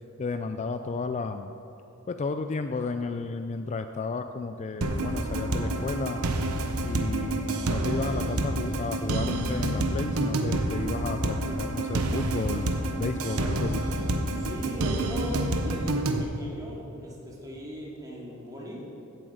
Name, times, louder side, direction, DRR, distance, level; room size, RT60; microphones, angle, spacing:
voice 1, 0.2-1.5 2.1-6.2 6.8-13.8, left 4 dB, 30° left, 8 dB, 0.3 m, -33 dB
sound 1, 4.8-16.2, right 2 dB, 80° right, 0.9 m, -28 dB
voice 2, 14.3-18.8, left 1 dB, 15° right, -4 dB, 2.4 m, -39 dB
16.0 x 7.7 x 5.0 m, 3.0 s
head